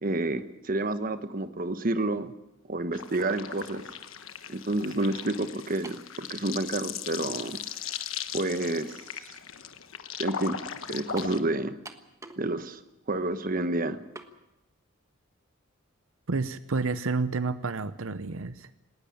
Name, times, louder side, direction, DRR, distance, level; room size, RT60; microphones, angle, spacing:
voice 1, 0.0-2.3 2.7-3.8 4.5-7.6 8.3-9.3 10.2-10.6 10.9-11.8 12.4-12.8 13.1-14.0, right 2 dB, 45° right, 10 dB, 1.2 m, -29 dB
sound 1, 2.9-11.4, left 8 dB, 80° left, 1.3 m, -38 dB
sound 2, 5.8-6.1 7.0-7.1 11.2-11.4 11.8-12.5 12.8-12.9 14.1-14.3, right 2 dB, 15° right, 1.3 m, -44 dB
voice 2, 16.3-18.7, right 4 dB, 80° right, 13 dB, 0.8 m, -30 dB
19.0 x 19.0 x 8.7 m, 0.92 s
head